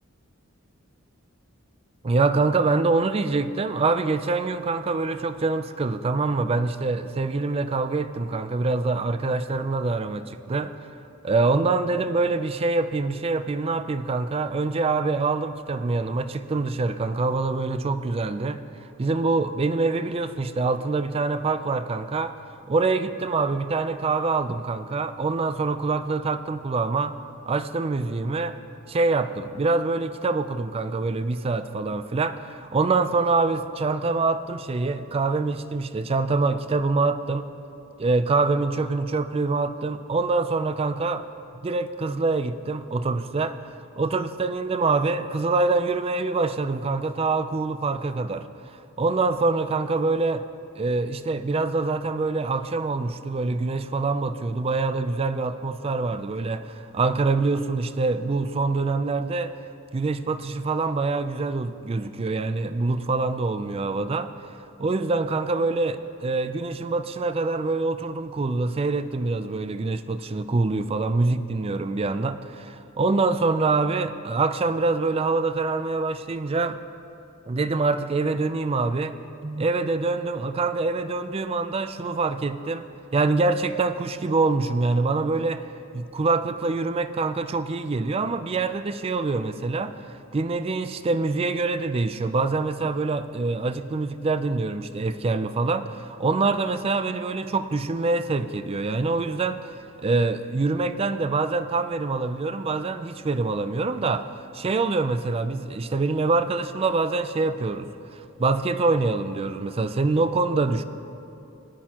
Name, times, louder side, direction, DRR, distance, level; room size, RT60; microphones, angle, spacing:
voice 1, 2.0-10.7 11.2-22.4 22.7-27.2 27.5-28.6 28.9-37.5 38.0-41.3 41.6-43.6 44.0-48.4 49.0-50.5 50.8-59.5 59.9-64.3 64.8-76.8 77.5-82.9 83.1-85.7 85.9-110.8, right 3 dB, 30° right, 12 dB, 0.4 m, -25 dB
18.5 x 11.0 x 2.9 m, 2.7 s
head